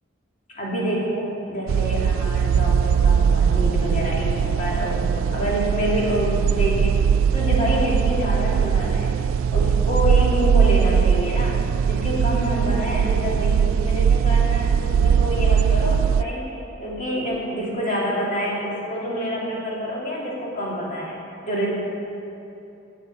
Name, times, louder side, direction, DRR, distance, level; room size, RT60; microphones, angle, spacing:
voice 1, 0.5-7.0 7.3-9.1 9.5-11.6 11.9-21.2 21.5-21.7, equal, 40° left, -5 dB, 2.8 m, -27 dB
sound 1, 1.7-16.2, right 7 dB, 85° right, 0.3 m, -20 dB
14.5 x 8.0 x 5.6 m, 2.8 s
head